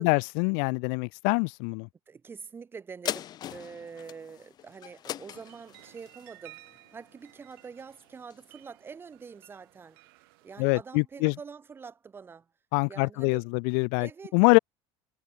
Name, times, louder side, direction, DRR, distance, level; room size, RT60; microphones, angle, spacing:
voice 1, 0.0-1.9 10.6-11.3 12.7-14.6, left 40 dB or more, 65° left, 0.4 m, -25 dB
voice 2, 2.1-10.0 10.4-12.5 12.9-13.5 14.0-14.4, right 5 dB, 20° right, 3.3 m, -45 dB
sound 1, 3.0-7.8 8.3-8.4, left 11 dB, 35° left, 1.3 m, -40 dB
sound 2, 5.3-10.8, right 25 dB, 80° right, 6.2 m, -56 dB
cardioid pair, 150°, 12 cm